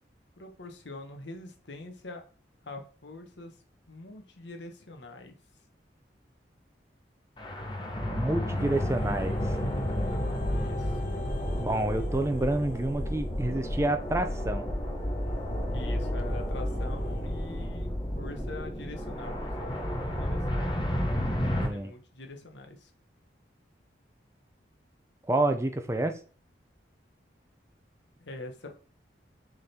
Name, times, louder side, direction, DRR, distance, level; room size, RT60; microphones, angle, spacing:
voice 1, 0.4-2.3 2.6-3.6 3.9-5.3 10.3-11.3 15.7-20.7 21.4-22.9 28.2-28.8, left 2 dB, 75° left, 4 dB, 1.2 m, -44 dB
sound 1, 7.4-21.7, equal, 25° left, 1.1 m, -31 dB
voice 2, 8.1-9.4 11.6-14.7 21.6-21.9 25.3-26.1, right 2 dB, 15° right, 7 dB, 0.5 m, -28 dB
sound 2, 8.6-17.7 18.4-18.5, left 4 dB, 45° left, 0.8 m, -45 dB
6.6 x 3.8 x 4.3 m, 0.39 s
head